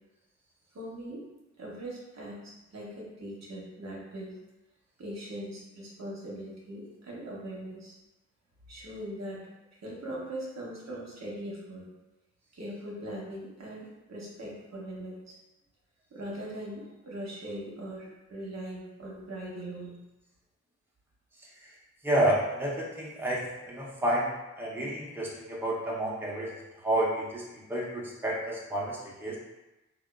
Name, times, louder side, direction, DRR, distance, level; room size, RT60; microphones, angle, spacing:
voice 1, 0.7-1.2 1.6-4.4 5.0-8.0 8.7-9.4 9.8-11.8 12.5-15.4 16.1-20.0, right 1 dB, 60° right, -4 dB, 0.8 m, -40 dB
voice 2, 21.4-21.7 22.0-29.4, right 1 dB, 5° right, -5 dB, 0.7 m, -30 dB
2.7 x 2.1 x 2.3 m, 1.0 s
cardioid pair, 40°, 31 cm